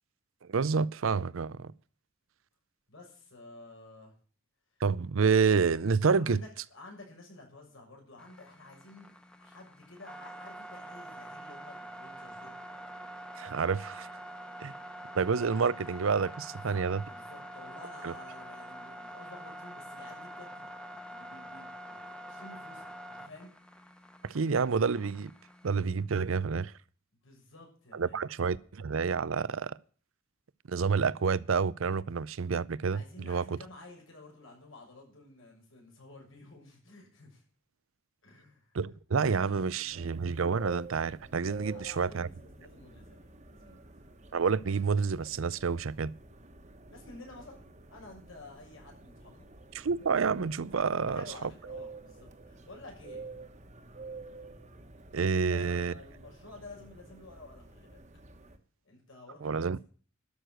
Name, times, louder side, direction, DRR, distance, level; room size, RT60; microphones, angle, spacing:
voice 1, 0.4-1.7 4.8-6.4 13.4-14.1 14.6-14.7 15.1-17.0 18.0-18.1 24.2-25.3 25.6-26.7 27.9-29.8 30.7-33.6 38.7-42.3 44.3-46.1 49.7-51.2 55.1-55.9 59.4-59.8, right 5 dB, 80° right, 0.6 m, -29 dB
voice 2, 2.9-4.1 6.2-9.1 9.4-12.6 16.5-22.0 22.3-22.9 23.2-23.5 27.2-28.6 32.9-37.4 38.2-38.7 39.5-40.1 41.6-43.9 46.9-47.6 47.9-49.5 51.0-53.2 55.2-58.0 58.8-59.7, left 2 dB, 75° left, 6.6 m, -52 dB
sound 1, 8.2-25.7, right 1 dB, 5° left, 1.0 m, -46 dB
sound 2, 39.9-58.6, right 3 dB, 35° right, 1.3 m, -49 dB
12.5 x 6.6 x 9.3 m
head